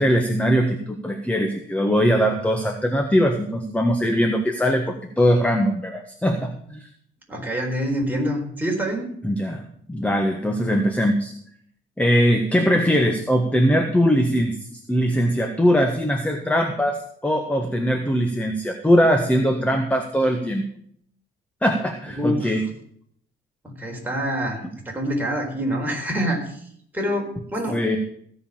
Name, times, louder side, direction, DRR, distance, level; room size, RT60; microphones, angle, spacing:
voice 1, 0.0-4.8 5.2-6.9 9.2-9.6 9.9-11.3 12.0-17.0 17.2-20.7 21.6-22.7 27.7-28.0, equal, 5° left, 4 dB, 1.5 m, -21 dB
voice 2, 7.3-9.1 22.1-22.5 23.6-26.6 26.9-28.0, equal, 10° right, 0 dB, 4.2 m, -26 dB
16.5 x 5.5 x 7.3 m, 0.64 s
cardioid pair, 90°, 20 cm